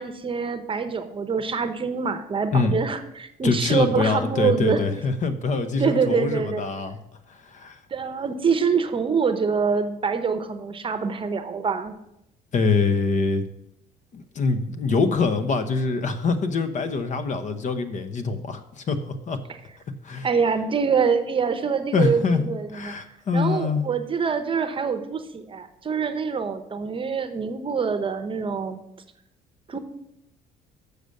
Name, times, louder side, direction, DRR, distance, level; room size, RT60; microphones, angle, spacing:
voice 1, 0.0-4.8 5.8-6.6 7.9-12.0 20.2-22.9 23.3-28.8 29.7-29.8, right 5 dB, 30° right, 9 dB, 0.8 m, -25 dB
voice 2, 3.4-7.0 7.3-7.8 12.5-13.4 14.1-19.4 20.0-20.3 21.9-23.9, left 4 dB, 45° left, 10 dB, 0.8 m, -24 dB
6.8 x 6.6 x 6.5 m, 0.83 s
cardioid pair, 110°, 17 cm